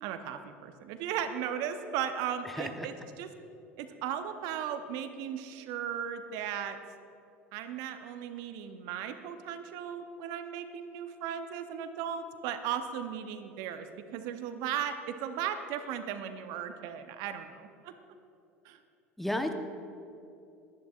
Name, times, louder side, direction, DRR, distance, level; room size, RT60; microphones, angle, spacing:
voice 1, 0.0-3.3 3.8-6.8 7.5-17.9 18.6-18.8, right 9 dB, 55° right, 9 dB, 0.7 m, -36 dB
voice 2, 2.5-2.9 19.2-19.5, left 1 dB, 5° left, 6 dB, 0.9 m, -32 dB
21.5 x 10.5 x 2.4 m, 2.7 s
figure-of-eight pair, 75°, 7 cm